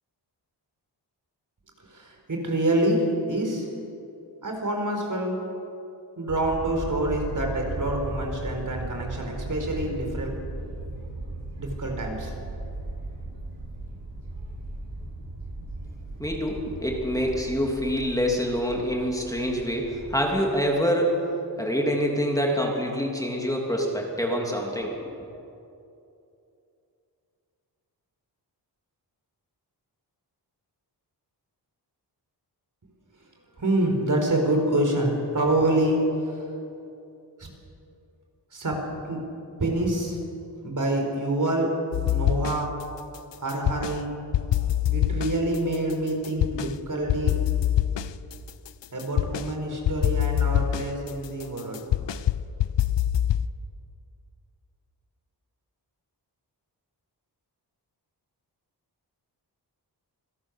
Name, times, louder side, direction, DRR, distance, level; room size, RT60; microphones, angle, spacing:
voice 1, 1.9-3.7 4.4-5.4 6.2-10.3 11.5-12.3 33.6-36.0 37.4-37.5 38.5-38.8 39.1-39.2 39.6-40.2 40.6-41.7 42.1-42.7 43.4-44.1 44.9-47.3 48.9-51.8, right 1 dB, 45° right, 2 dB, 4.4 m, -26 dB
sound 1, 6.3-20.2, right 2 dB, 75° right, 7.0 m, -37 dB
voice 2, 16.2-21.2 21.6-25.4, equal, 10° left, -1 dB, 3.1 m, -26 dB
sound 2, 41.9-42.8 43.1-44.0 44.3-46.7 47.1-49.5 49.9-53.5, left 11 dB, 90° left, 0.7 m, -25 dB
26.5 x 17.0 x 6.6 m, 2.7 s
wide cardioid pair, 95°, 42 cm